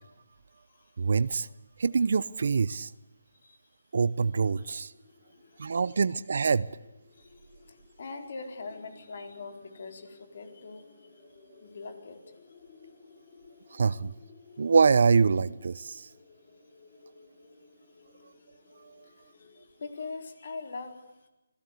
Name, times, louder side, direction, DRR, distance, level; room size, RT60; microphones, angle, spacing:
voice 1, 1.0-1.5 1.8-2.9 3.9-4.9 5.6-6.7 13.7-14.1 14.6-16.1, right 5 dB, 60° right, 18 dB, 0.7 m, -25 dB
sound 1, 4.3-19.7, left 4 dB, 35° left, 6.8 m, -57 dB
voice 2, 5.2-5.7 7.1-11.1 11.6-12.4 18.2-18.5 19.0-21.3, left 4 dB, 50° left, 6 dB, 4.4 m, -43 dB
26.0 x 17.5 x 8.3 m, 0.98 s
hypercardioid pair, 165°, 0 cm